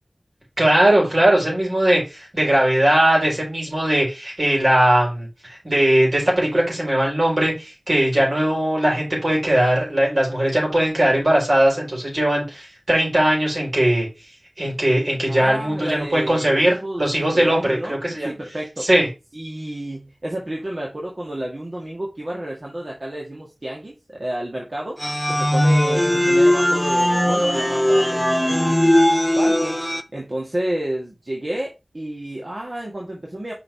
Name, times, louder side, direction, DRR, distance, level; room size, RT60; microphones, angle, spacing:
voice 1, 0.6-14.1 14.6-18.3 18.8-19.1, right 1 dB, 70° right, -3 dB, 4.4 m, -19 dB
voice 2, 15.3-18.9 19.3-25.0 25.3-28.9 29.3-29.8 30.1-33.5, right 1 dB, 50° right, -2 dB, 1.5 m, -30 dB
sound 1, 25.0-30.0, left 1 dB, ahead, 0.6 m, -18 dB
5.6 x 4.1 x 4.4 m, 0.26 s
wide cardioid pair, 55°, 0 cm